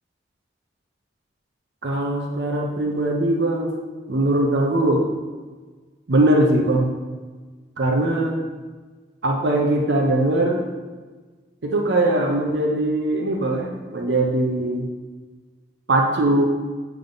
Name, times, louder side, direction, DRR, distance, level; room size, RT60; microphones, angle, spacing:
voice 1, 1.8-3.8 4.1-5.1 6.1-7.0 7.8-8.4 9.2-10.6 11.6-14.9 15.9-16.5, right 1 dB, 65° right, 1 dB, 0.6 m, -21 dB
6.9 x 3.5 x 3.9 m, 1.4 s
head